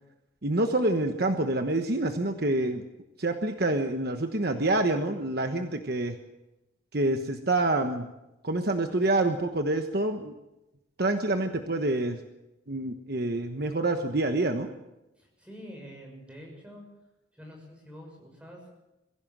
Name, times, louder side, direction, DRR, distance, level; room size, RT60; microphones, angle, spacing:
voice 1, 0.4-2.8 3.2-6.2 6.9-8.1 8.4-10.3 11.0-12.2 12.7-14.7, right 2 dB, 50° right, 6 dB, 1.2 m, -27 dB
voice 2, 15.2-16.8 17.3-18.7, equal, 5° right, 0 dB, 6.5 m, -46 dB
22.5 x 16.0 x 7.6 m, 0.94 s
head